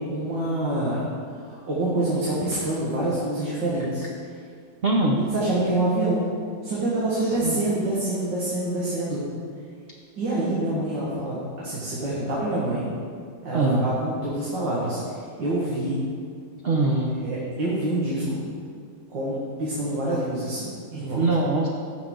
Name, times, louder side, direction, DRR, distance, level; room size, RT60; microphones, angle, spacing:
voice 1, 0.1-1.0 1.4-4.1 5.1-6.3 6.6-9.2 10.2-12.9 13.4-16.0 16.9-18.5 19.1-21.2, right 1 dB, 90° right, -7 dB, 2.3 m, -26 dB
voice 2, 4.8-5.2 7.4-7.6 13.5-13.8 16.6-17.1 21.2-21.7, right 2 dB, 50° right, -1 dB, 0.7 m, -22 dB
14.5 x 5.8 x 3.8 m, 2.1 s
omnidirectional pair, 1.9 m